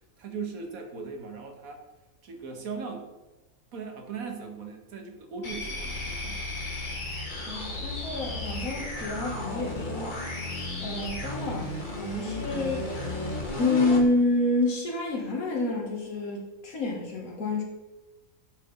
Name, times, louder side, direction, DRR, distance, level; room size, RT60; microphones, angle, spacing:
voice 1, 0.2-1.8 2.2-3.1 3.7-6.4, right 5 dB, 85° right, 3 dB, 1.5 m, -38 dB
sound 1, 5.4-14.1, left 2 dB, 35° left, 1.3 m, -34 dB
voice 2, 7.5-10.1 10.8-12.9 13.6-17.6, left 2 dB, 90° left, -2 dB, 2.0 m, -28 dB
9.1 x 3.8 x 4.0 m, 1.1 s
omnidirectional pair, 1.5 m